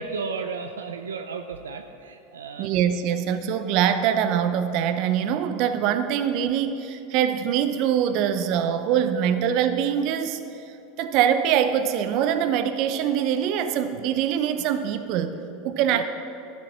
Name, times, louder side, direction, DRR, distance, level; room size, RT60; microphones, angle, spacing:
voice 1, 0.0-2.7 15.9-16.0, right 4 dB, 85° right, 7 dB, 0.5 m, -33 dB
voice 2, 2.6-10.4 11.0-16.0, right 9 dB, 55° right, 10 dB, 0.7 m, -23 dB
12.0 x 7.6 x 5.6 m, 2.7 s
hypercardioid pair, 90°, 0 cm